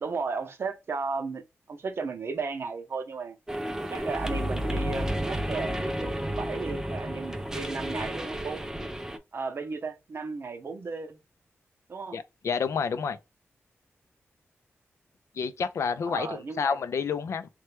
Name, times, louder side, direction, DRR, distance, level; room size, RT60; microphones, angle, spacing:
voice 1, 0.0-3.4 3.9-8.6 9.3-11.2 11.9-12.2 16.0-16.8, right 4 dB, 55° right, 0.6 m, -35 dB
sound 1, 3.5-9.2, equal, 10° right, 0.4 m, -31 dB
voice 2, 12.1-13.2 15.3-17.5, left 6 dB, 75° left, 0.4 m, -29 dB
3.0 x 2.2 x 3.1 m
wide cardioid pair, 105°, 5 cm